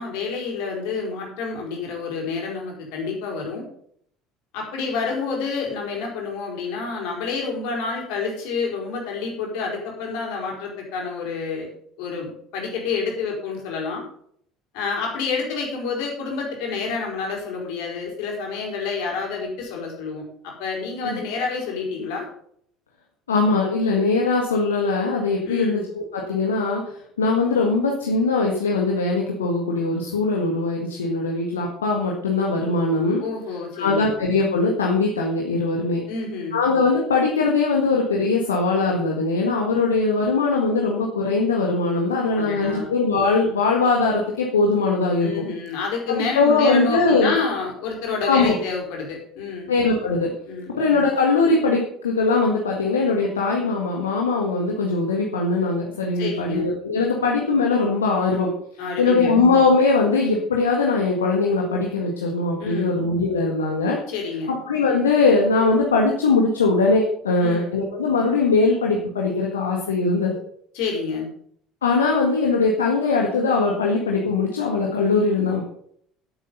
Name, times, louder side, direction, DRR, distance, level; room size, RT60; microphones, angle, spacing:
voice 1, 0.0-3.6 4.5-11.7 12.0-14.0 14.7-22.3 25.4-25.8 33.2-34.1 36.1-36.6 42.3-42.9 45.2-49.7 50.5-50.7 56.2-56.7 58.8-59.3 62.6-63.0 64.1-64.6 67.4-67.7 70.7-71.3, left 4 dB, 60° left, -1 dB, 4.8 m, -28 dB
voice 2, 23.3-26.8 27.2-33.2 33.8-36.0 36.5-45.3 46.1-47.3 48.3-48.6 49.7-50.3 50.7-58.5 59.0-64.0 64.7-70.4 71.8-75.6, left 3 dB, 75° left, -1 dB, 1.7 m, -21 dB
12.0 x 8.3 x 5.5 m, 0.66 s
figure-of-eight pair, 60°, 0 cm